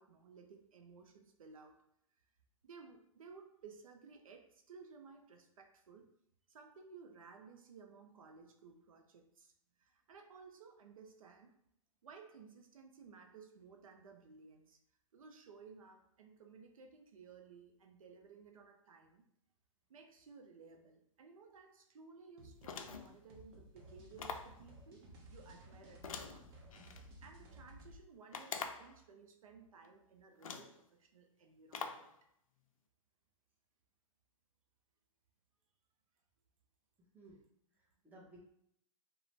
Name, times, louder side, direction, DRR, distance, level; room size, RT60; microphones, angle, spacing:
voice 1, 0.0-1.8 2.6-6.1 6.5-9.5 9.8-11.6 12.0-14.8 15.1-19.2 19.9-26.5 27.2-32.1, right 5 dB, 80° right, 4 dB, 0.5 m, -57 dB
sound 1, 22.4-28.0, right 1 dB, 50° right, 0.8 m, -56 dB
sound 2, 22.6-23.2 24.2-24.6 26.0-27.0 28.3-29.0 29.8-29.9 30.4-30.8 31.7-32.1, left 6 dB, 80° left, 0.4 m, -45 dB
voice 2, 37.0-37.4 37.7-38.4, right 1 dB, 10° right, -4 dB, 0.7 m, -59 dB
2.4 x 2.1 x 3.2 m, 0.73 s
hypercardioid pair, 125°, 17 cm